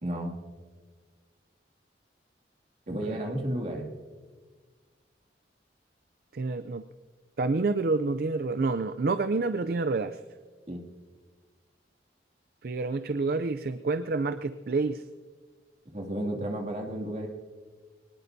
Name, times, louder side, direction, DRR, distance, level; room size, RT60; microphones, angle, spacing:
voice 1, 0.0-0.4 2.9-3.9 10.7-10.8 15.9-17.3, right 1 dB, 40° right, 1 dB, 2.4 m, -32 dB
voice 2, 6.3-6.8 7.4-10.2 12.6-15.0, right 3 dB, 55° right, 11 dB, 0.5 m, -28 dB
24.0 x 19.5 x 2.7 m, 1.5 s
head